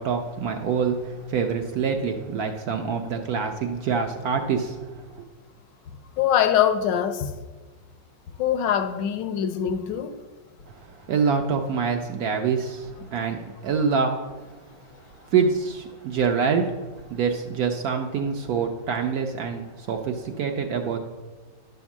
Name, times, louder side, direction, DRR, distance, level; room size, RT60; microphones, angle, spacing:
voice 1, 0.0-5.2 10.7-14.4 15.0-21.0, right 6 dB, 65° right, 4 dB, 0.9 m, -26 dB
voice 2, 6.2-7.3 8.4-10.1, left 9 dB, 75° left, 9 dB, 1.2 m, -23 dB
10.0 x 3.6 x 7.1 m, 1.2 s
omnidirectional pair, 2.0 m